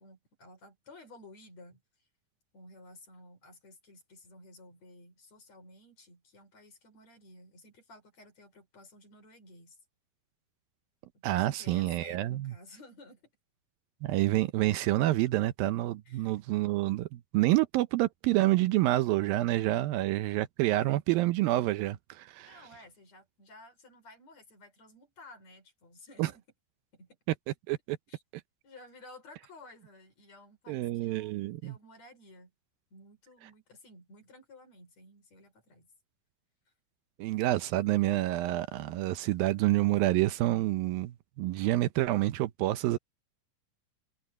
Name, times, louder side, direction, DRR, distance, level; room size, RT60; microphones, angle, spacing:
voice 1, 0.0-1.8 2.5-9.8 11.1-13.3 16.1-16.4 22.5-26.4 26.9-27.2 28.1-28.2 28.6-32.5 32.9-35.9, left 2 dB, 45° left, 5.9 m, -54 dB
voice 2, 11.2-12.5 14.0-22.6 26.2-26.3 27.7-28.0 30.7-31.8 37.2-43.0, right 16 dB, 80° right, 2.5 m, -28 dB
omnidirectional pair, 4.3 m